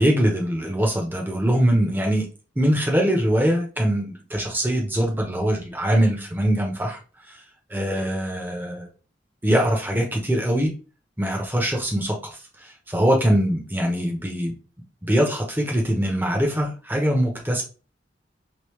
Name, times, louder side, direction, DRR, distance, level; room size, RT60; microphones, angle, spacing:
voice 1, 0.0-2.3 2.6-7.0 7.7-8.9 9.4-10.7 11.2-14.5 15.0-17.6, equal, 10° right, 1 dB, 0.7 m, -22 dB
3.1 x 2.7 x 3.1 m, 0.34 s
head